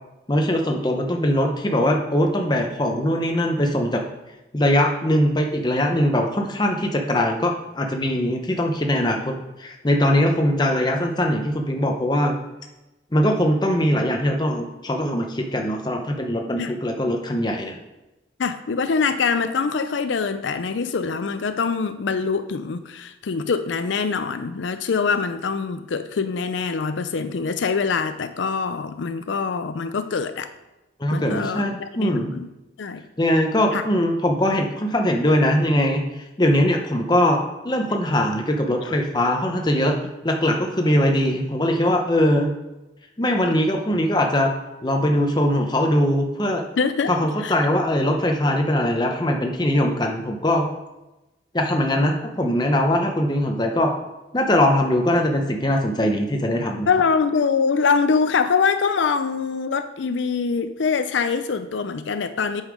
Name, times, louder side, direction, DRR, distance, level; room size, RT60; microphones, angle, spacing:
voice 1, 0.3-4.0 4.5-12.4 13.1-17.7 31.0-32.3 33.2-37.4 37.6-40.0 40.2-42.5 43.2-44.5 44.8-46.6 47.1-50.7 51.5-53.9 54.3-56.9, left 1 dB, 20° left, 2 dB, 0.7 m, -21 dB
voice 2, 18.4-30.5 31.1-32.5 32.8-33.0 33.7-33.8 38.8-38.9 43.4-43.5 46.8-47.1 47.4-47.5 56.9-62.6, left 5 dB, 70° left, 10 dB, 0.5 m, -24 dB
8.2 x 5.6 x 4.9 m, 1.0 s
head